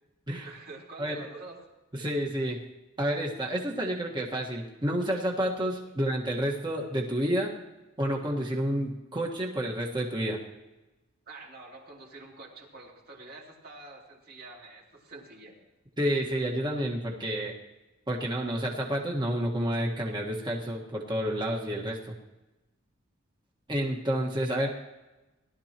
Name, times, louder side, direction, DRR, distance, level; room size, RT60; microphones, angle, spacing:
voice 1, 0.4-1.6 11.3-15.6, right 3 dB, 50° right, -2 dB, 2.7 m, -47 dB
voice 2, 1.9-2.6 3.0-7.5 8.0-10.4 16.0-17.5 18.1-22.1 23.7-24.7, equal, 20° right, -1 dB, 1.5 m, -29 dB
18.0 x 12.5 x 3.0 m, 1.1 s
head